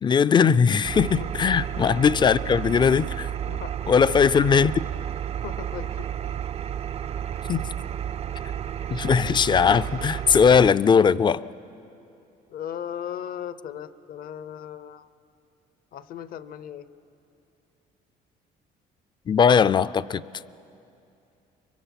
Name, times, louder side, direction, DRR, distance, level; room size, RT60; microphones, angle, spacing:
voice 1, 0.0-3.3 3.9-4.7 7.5-7.6 8.9-11.4 19.3-20.2, left 6 dB, 25° left, 18 dB, 0.4 m, -19 dB
Engine, 0.8-10.7, right 9 dB, 40° right, 0.4 m, -32 dB
voice 2, 3.4-3.8 5.4-6.1 12.5-15.1 15.9-16.9, left 9 dB, 60° left, 15 dB, 0.8 m, -37 dB
24.5 x 22.5 x 5.9 m, 2.7 s
cardioid pair, 110°, 17 cm